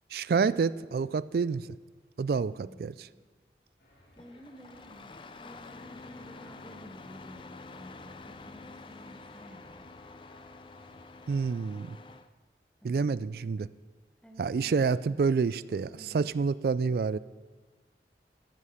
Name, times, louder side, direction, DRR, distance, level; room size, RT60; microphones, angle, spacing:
voice 1, 0.1-1.7 2.2-3.1 11.3-12.0 12.8-13.7 14.4-17.2, right 5 dB, 55° right, 18 dB, 0.3 m, -28 dB
voice 2, 2.6-3.3 4.2-9.9 12.8-13.0 14.2-14.8 15.9-16.2, equal, 5° left, 4 dB, 1.1 m, -52 dB
sound 1, 3.8-11.5, equal, 60° left, 3.9 m, -59 dB
Engine starting, 4.1-12.3, left 3 dB, 30° left, 0.4 m, -48 dB
14.0 x 11.0 x 4.9 m, 1.4 s
head